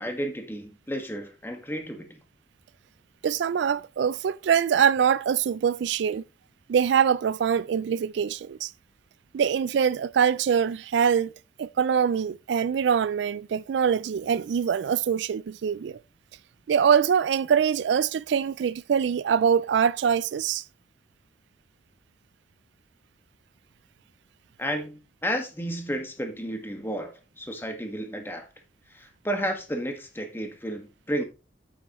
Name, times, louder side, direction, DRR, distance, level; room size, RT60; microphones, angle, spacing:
voice 1, 0.0-2.2 24.6-28.5 28.9-31.2, equal, 10° left, 1.6 m, -32 dB
voice 2, 3.2-6.2 6.7-8.7 9.3-11.3 11.6-16.0 16.7-20.6, right 7 dB, 75° right, 0.3 m, -24 dB
8.8 x 8.4 x 3.1 m
head